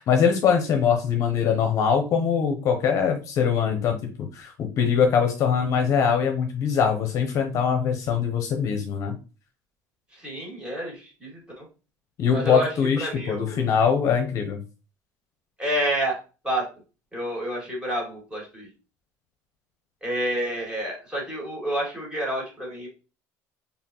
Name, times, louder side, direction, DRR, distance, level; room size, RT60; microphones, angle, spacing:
voice 1, 0.0-9.2 12.2-14.6, left 7 dB, 50° left, 5 dB, 0.8 m, -22 dB
voice 2, 10.1-11.7 12.3-12.7 13.0-13.7 15.6-16.2 16.4-16.7 17.1-18.7 20.0-22.9, right 1 dB, 15° right, -3 dB, 2.3 m, -29 dB
4.2 x 3.5 x 3.0 m, 0.33 s
cardioid pair, 140°, 7 cm